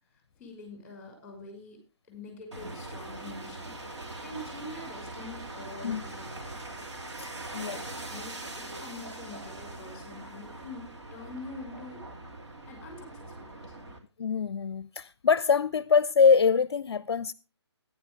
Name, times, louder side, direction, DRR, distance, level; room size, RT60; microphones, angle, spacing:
voice 1, 0.1-1.8 2.1-3.7 4.2-6.6 7.5-12.1 12.7-13.9, left 2 dB, 5° left, 5.5 m, -45 dB
sound 1, 2.5-14.0, right 2 dB, 75° right, 3.1 m, -42 dB
voice 2, 7.2-7.8 14.2-17.3, left 5 dB, 65° left, 0.5 m, -24 dB
14.5 x 10.5 x 3.4 m
figure-of-eight pair, 150°, 15 cm